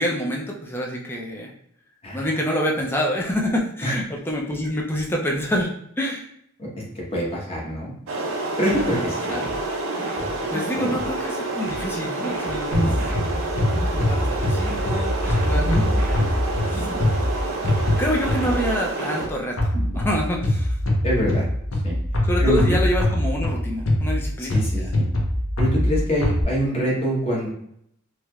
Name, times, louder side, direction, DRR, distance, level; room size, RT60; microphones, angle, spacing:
voice 1, 0.0-1.5 2.1-6.3 8.7-9.0 9.3-9.4 10.5-12.9 14.0-16.0 16.6-16.9 17.7-19.6 19.9-20.8 22.2-24.9, equal, 10° left, -1 dB, 0.4 m, -27 dB
voice 2, 7.1-7.9 8.6-9.2 10.5-10.9 12.7-13.0 15.5-15.8 21.0-21.4 21.8-22.0 22.4-22.6 24.4-25.1 25.6-27.5, equal, 30° left, -4 dB, 1.0 m, -25 dB
sound 1, 8.1-19.3, right 2 dB, 85° right, 0.6 m, -28 dB
sound 2, 8.7-11.2 11.7-14.2 14.7-17.2 17.7-20.2, right 1 dB, 45° right, 0.8 m, -37 dB
sound 3, 12.7-18.8 19.6-26.4, left 1 dB, 80° left, 0.8 m, -23 dB
3.2 x 2.9 x 2.3 m, 0.72 s
head